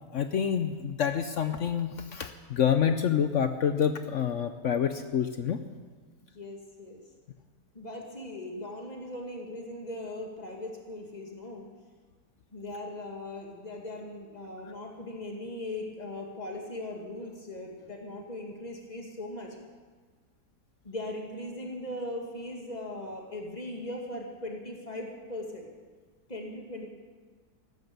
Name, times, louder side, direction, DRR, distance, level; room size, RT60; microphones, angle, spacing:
voice 1, 0.1-5.6, left 8 dB, 60° left, 9 dB, 0.8 m, -27 dB
voice 2, 6.3-7.0 7.7-11.7 12.5-19.6 20.8-25.7 26.3-26.9, left 1 dB, 25° left, 0 dB, 2.3 m, -39 dB
15.0 x 12.0 x 6.8 m, 1.5 s
omnidirectional pair, 1.7 m